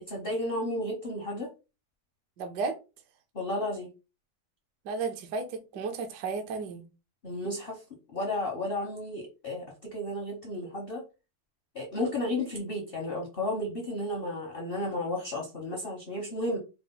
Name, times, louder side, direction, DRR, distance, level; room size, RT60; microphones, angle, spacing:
voice 1, 0.1-1.5 3.3-3.9 7.2-7.8 8.1-11.0 11.7-16.6, left 1 dB, 60° left, 0.6 m, -33 dB
voice 2, 2.4-2.8 4.8-6.8, right 4 dB, 65° right, 1.1 m, -33 dB
4.7 x 2.1 x 3.7 m
omnidirectional pair, 2.4 m